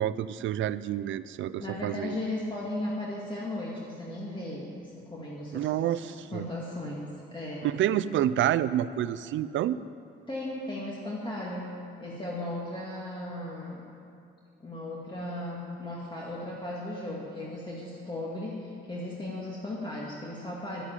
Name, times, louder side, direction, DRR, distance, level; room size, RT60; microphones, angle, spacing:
voice 1, 0.0-2.2 5.5-6.0 6.3-6.4 7.6-9.8, right 11 dB, 75° right, 16 dB, 0.5 m, -28 dB
voice 2, 1.6-7.6 10.3-11.7 12.0-13.8 14.6-20.8, left 1 dB, 25° left, -5 dB, 2.1 m, -36 dB
11.5 x 8.2 x 8.9 m, 2.6 s
cardioid pair, 90°, 20 cm